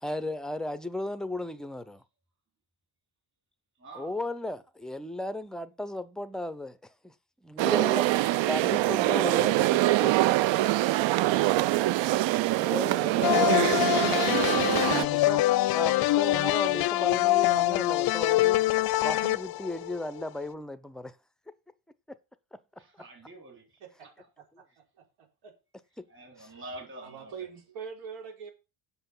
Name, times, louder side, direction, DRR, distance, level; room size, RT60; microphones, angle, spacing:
voice 1, 0.0-2.0 3.9-6.8 7.0-7.1 7.4-8.1 8.5-10.4 12.5-13.7 15.0-15.4 15.7-18.6 19.0-21.2 22.1-22.2 22.5-22.6 26.0-26.1 26.4-26.5, left 1 dB, ahead, 0.4 m, -35 dB
voice 2, 3.8-4.1 14.8-15.4 22.8-23.8 24.7-24.8 26.1-27.3, right 2 dB, 25° right, 3.8 m, -47 dB
sound 1, 7.6-15.1, right 17 dB, 70° right, 0.6 m, -24 dB
sound 2, 13.2-20.2, left 16 dB, 55° left, 0.5 m, -25 dB
voice 3, 27.0-28.5, right 6 dB, 90° right, 4.1 m, -42 dB
8.0 x 6.8 x 7.1 m
cardioid pair, 155°, 47 cm